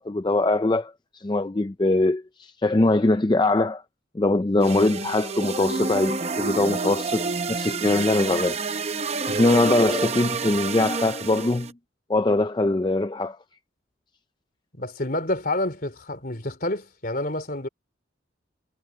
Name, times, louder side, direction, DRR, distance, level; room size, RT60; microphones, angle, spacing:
voice 1, 0.0-3.8 4.1-8.6 9.3-11.7 12.1-13.4, left 2 dB, 25° left, 0.4 m, -22 dB
sound 1, 4.6-11.7, right 4 dB, 35° right, 0.8 m, -28 dB
voice 2, 14.7-17.7, left 1 dB, 50° left, 3.4 m, -28 dB
head